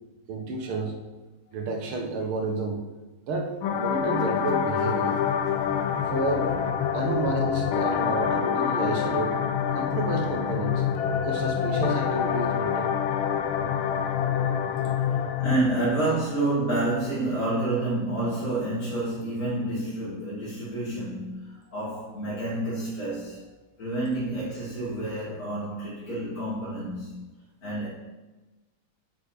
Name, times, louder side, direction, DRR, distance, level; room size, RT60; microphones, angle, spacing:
voice 1, 0.3-0.9 1.5-2.8 3.3-5.2 6.1-6.5 6.9-9.4 9.7-10.8 11.2-12.9, right 3 dB, 85° right, 2 dB, 2.2 m, -30 dB
sound 1, 3.6-15.6, left 8 dB, 80° left, 1.5 m, -26 dB
voice 2, 5.7-6.1 14.9-23.4 23.8-27.3 27.6-27.9, right 2 dB, 45° left, -10 dB, 2.9 m, -29 dB
8.8 x 6.0 x 5.2 m, 1.1 s
omnidirectional pair, 2.3 m